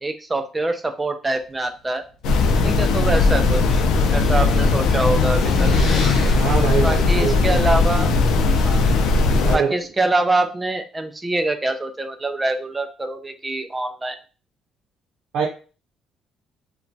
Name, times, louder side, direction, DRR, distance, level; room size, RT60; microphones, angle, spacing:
voice 1, 0.0-2.0 2.6-3.8 4.1-5.7 6.8-8.2 8.6-8.8 9.5-14.2, right 2 dB, 15° right, 6 dB, 0.3 m, -24 dB
sound 1, 2.2-9.6, left 3 dB, 85° left, 0.4 m, -18 dB
sound 2, 3.2-7.9, left 4 dB, 60° left, 0.8 m, -30 dB
voice 2, 6.3-7.8 9.4-9.7 15.3-15.5, right 5 dB, 75° right, -2 dB, 0.6 m, -24 dB
2.9 x 2.2 x 2.6 m, 0.35 s
cardioid pair, 155°, 0 cm